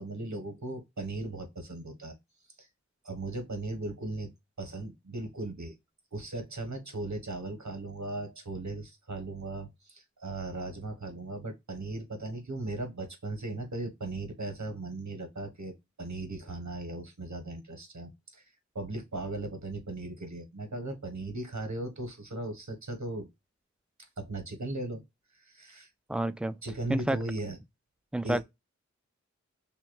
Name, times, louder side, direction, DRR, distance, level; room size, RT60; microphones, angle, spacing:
voice 1, 0.0-2.2 2.6-2.7 3.0-4.3 4.6-5.8 6.1-15.7 16.0-18.5 18.7-23.3 24.2-25.0 25.3-25.9 26.6-27.6 28.2-28.4, right 2 dB, 70° right, 1.2 m, -37 dB
voice 2, 26.1-26.5 26.9-27.2 28.1-28.4, right 1 dB, 5° right, 0.3 m, -29 dB
5.7 x 2.3 x 2.3 m
wide cardioid pair, 50°, 29 cm